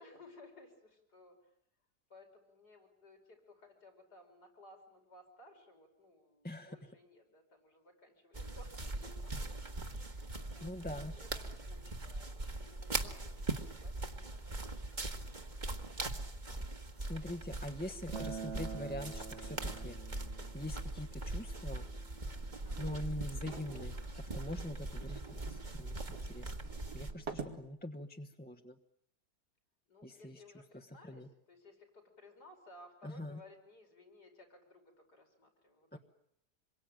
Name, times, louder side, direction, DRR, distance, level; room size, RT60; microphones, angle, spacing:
voice 1, 0.0-1.5 2.1-9.3 9.7-10.1 10.4-15.0 15.3-15.8 22.6-22.9 29.9-36.0, left 2 dB, 85° left, 3 dB, 5.7 m, -59 dB
voice 2, 6.4-6.8 10.6-11.1 17.1-20.0 20.5-21.9 22.8-23.9 24.3-26.5 26.9-28.8 30.0-30.4 31.1-31.3 33.0-33.4 35.9-36.0, left 1 dB, 5° left, 4 dB, 1.0 m, -43 dB
sound 1, 8.3-27.1, right 2 dB, 30° right, 1.7 m, -41 dB
Acoustic guitar, 18.1-23.3, right 5 dB, 45° right, 1.9 m, -48 dB
sound 2, 22.3-27.6, right 4 dB, 90° right, 3.1 m, -47 dB
27.0 x 23.0 x 9.1 m, 0.74 s
omnidirectional pair, 1.7 m